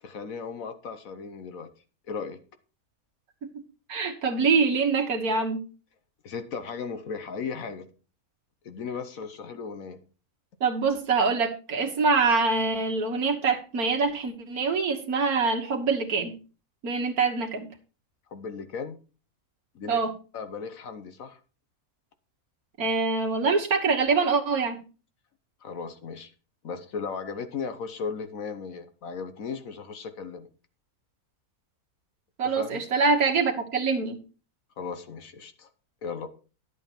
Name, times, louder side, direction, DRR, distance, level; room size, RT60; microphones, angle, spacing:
voice 1, 0.0-1.7 2.1-2.4 6.2-7.9 8.6-10.0 18.3-19.0 19.7-20.0 20.3-21.4 25.6-26.3 26.6-30.5 32.4-32.8 34.8-35.7 36.0-36.3, left 5 dB, 70° left, 9 dB, 1.4 m, -36 dB
voice 2, 3.9-5.6 10.6-16.3 16.8-17.7 19.9-20.1 22.8-24.8 32.4-34.2, right 4 dB, 85° right, 2 dB, 2.0 m, -24 dB
11.0 x 8.1 x 4.4 m, 0.35 s
omnidirectional pair, 1.5 m